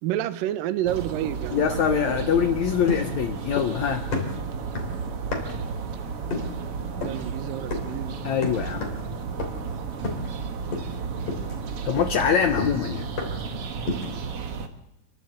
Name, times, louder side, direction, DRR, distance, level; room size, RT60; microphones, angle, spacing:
voice 1, 0.0-2.2 7.0-8.1, right 12 dB, 70° right, 13 dB, 2.5 m, -29 dB
sound 1, 0.9-14.7, right 5 dB, 55° right, 1.7 m, -33 dB
voice 2, 1.5-4.1 8.2-8.9 11.8-13.1, left 8 dB, 70° left, 7 dB, 1.8 m, -24 dB
sound 2, 2.9-3.8 4.1-5.7 6.3-6.6 7.0-7.3 7.7-8.0 8.4-9.1 9.4-9.7 10.0-10.4 10.7-11.0 11.3-13.5 13.9-14.2, left 4 dB, 40° left, 3.8 m, -32 dB
28.5 x 11.5 x 8.0 m, 0.86 s
omnidirectional pair, 4.4 m